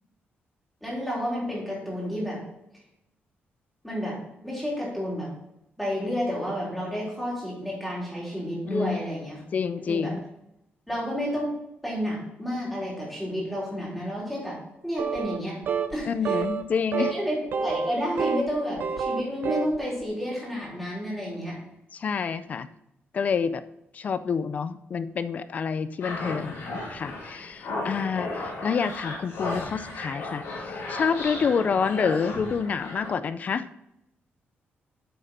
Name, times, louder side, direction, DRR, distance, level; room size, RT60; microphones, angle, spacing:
voice 1, 0.8-2.4 3.8-5.3 5.8-9.4 9.9-10.1 10.9-11.5 11.8-14.6 14.8-15.6 15.9-16.4 17.0-21.6 31.6-31.7, equal, ahead, -6 dB, 3.6 m, -31 dB
voice 2, 8.7-9.0 9.5-10.2 16.1-17.1 21.9-22.7 23.1-23.6 23.9-33.7, left 6 dB, 40° left, 13 dB, 0.4 m, -28 dB
sound 1, 15.0-15.4 15.7-15.9 16.2-16.6 16.9-17.1 17.5-18.5 18.8-19.8, right 6 dB, 55° right, 0.6 m, -27 dB
sound 2, 26.0-33.1, left 2 dB, 85° left, 2.8 m, -35 dB
8.7 x 6.8 x 4.2 m, 0.82 s
wide cardioid pair, 175°, 4 cm